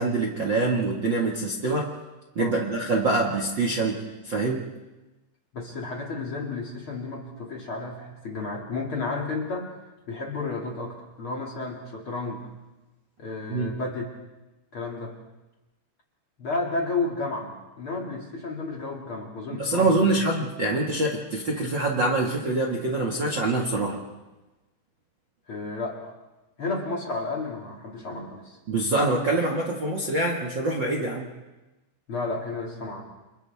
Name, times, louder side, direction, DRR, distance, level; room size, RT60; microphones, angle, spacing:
voice 1, 0.0-1.9 2.3-4.7 13.5-13.7 19.6-24.0 28.7-31.3, right 2 dB, 90° right, -1 dB, 1.0 m, -25 dB
voice 2, 5.5-9.7 10.1-12.5 13.2-14.1 14.7-15.2 16.4-20.1 25.5-26.1 26.6-28.6 32.1-33.0, left 3 dB, 35° left, -1 dB, 2.3 m, -32 dB
29.5 x 28.5 x 3.6 m, 1.1 s
omnidirectional pair, 5.6 m